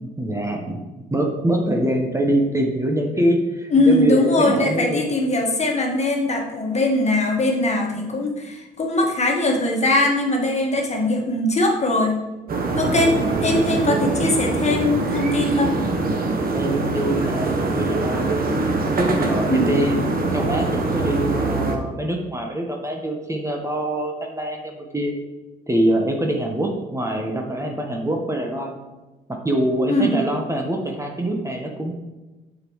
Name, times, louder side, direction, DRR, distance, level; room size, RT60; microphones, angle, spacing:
voice 1, 0.0-0.8 1.1-5.1 12.8-13.1 16.5-18.4 19.0-25.1 25.7-28.8 29.3-31.9, right 1 dB, 15° right, 1 dB, 1.3 m, -24 dB
voice 2, 3.7-12.2 12.8-15.7 19.5-19.7 29.9-30.2, left 2 dB, 35° left, 0 dB, 1.8 m, -21 dB
sound 1, 12.5-21.8, right 3 dB, 50° right, 1.2 m, -23 dB
7.4 x 6.5 x 3.2 m, 1.1 s
hypercardioid pair, 50°, 20 cm